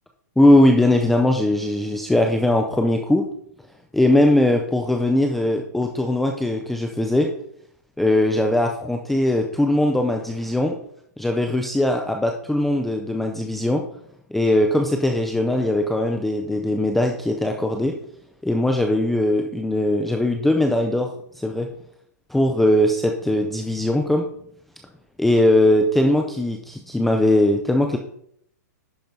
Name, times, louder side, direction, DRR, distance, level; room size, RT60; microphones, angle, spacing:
voice 1, 0.4-3.2 3.9-7.3 8.0-10.8 11.2-13.8 14.3-17.9 18.4-21.7 22.3-24.3 25.2-28.0, left 1 dB, ahead, 3 dB, 0.3 m, -20 dB
11.0 x 5.3 x 4.5 m, 0.70 s
hypercardioid pair, 175°, 10 cm